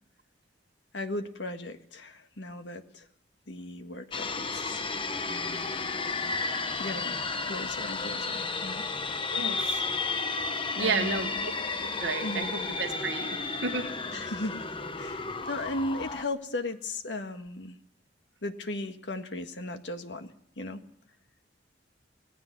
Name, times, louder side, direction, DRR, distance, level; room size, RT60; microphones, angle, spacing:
voice 1, 0.9-3.0 3.5-4.8 5.3-5.8 6.8-8.9 10.8-11.5 12.2-12.5 14.1-14.6 15.0-17.8 18.4-20.8, left 2 dB, 75° left, 7 dB, 1.6 m, -37 dB
sound 1, 4.1-16.2, left 4 dB, 30° left, 1.0 m, -33 dB
voice 2, 9.3-9.8 10.8-11.3 12.0-13.4 13.6-13.9, right 4 dB, 75° right, 4 dB, 1.6 m, -31 dB
25.5 x 17.0 x 6.1 m, 0.64 s
head